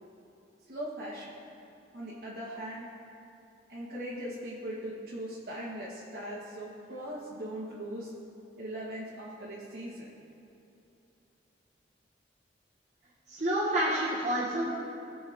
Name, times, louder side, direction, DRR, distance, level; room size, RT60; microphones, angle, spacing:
voice 1, 0.7-1.3 1.9-2.9 3.7-8.1 8.6-10.1, right 1 dB, 60° right, -8 dB, 1.7 m, -39 dB
voice 2, 13.3-14.7, right 1 dB, 40° right, -7 dB, 1.6 m, -28 dB
18.5 x 6.1 x 3.7 m, 2.7 s
head